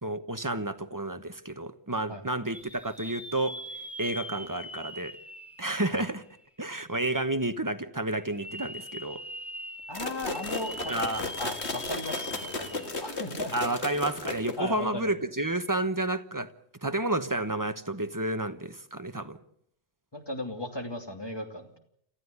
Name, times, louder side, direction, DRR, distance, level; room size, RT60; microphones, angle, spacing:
voice 1, 0.0-3.6 4.0-5.2 5.6-6.2 6.6-9.2 10.9-11.2 13.5-16.5 16.8-19.4, right 1 dB, 20° right, 10 dB, 1.1 m, -30 dB
sound 1, 2.5-6.5 7.0-7.1 8.2-13.1 13.5-13.6 15.6-15.7, equal, ahead, 1.7 m, -42 dB
sound 2, 9.9-14.8, left 3 dB, 75° left, 2.3 m, -35 dB
voice 2, 9.9-10.9 11.4-13.5 14.6-15.1 20.1-21.8, left 1 dB, 20° left, 4 dB, 3.0 m, -36 dB
29.5 x 14.5 x 8.2 m, 0.71 s
omnidirectional pair, 1.1 m